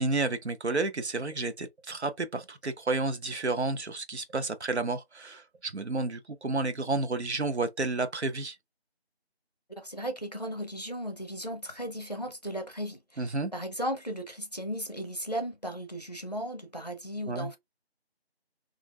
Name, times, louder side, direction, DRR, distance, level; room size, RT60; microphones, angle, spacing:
voice 1, 0.0-8.6 13.2-13.5 17.3-17.5, right 3 dB, 85° right, 0.8 m, -31 dB
voice 2, 9.7-17.6, equal, 40° left, 0.6 m, -36 dB
3.1 x 2.5 x 2.3 m
figure-of-eight pair, 175°, 32 cm